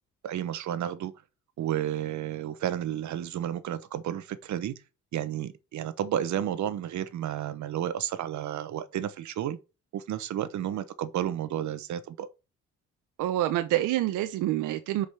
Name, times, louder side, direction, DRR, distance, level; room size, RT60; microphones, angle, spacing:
voice 1, 0.2-1.1 1.6-4.7 5.1-9.6 9.9-12.3, right 10 dB, 70° right, 1.0 m, -32 dB
voice 2, 13.2-15.1, right 14 dB, 90° right, 0.7 m, -27 dB
5.3 x 5.0 x 5.7 m
cardioid pair, 90°, 30 cm